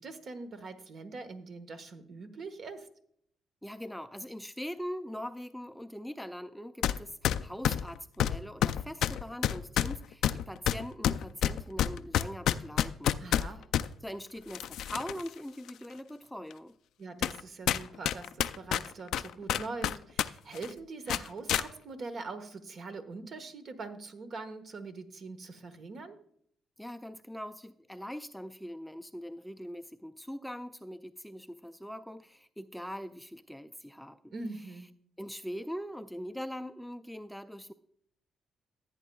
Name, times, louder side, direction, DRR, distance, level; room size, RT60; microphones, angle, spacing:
voice 1, 0.0-2.9 13.2-13.6 17.0-26.2 34.3-35.0, right 3 dB, 55° right, 8 dB, 1.1 m, -43 dB
voice 2, 3.6-13.2 13.4-13.5 14.0-16.7 26.8-34.3 35.2-37.7, equal, 5° left, 10 dB, 0.4 m, -42 dB
sound 1, 6.8-7.0 7.2-13.9 14.5-15.3 15.7-15.8 16.5-16.6 17.2-17.4 17.7-20.3 20.5-20.7 21.1-21.7, left 11 dB, 80° left, 0.3 m, -28 dB
15.5 x 8.7 x 2.3 m, 0.66 s
cardioid pair, 90°, 0 cm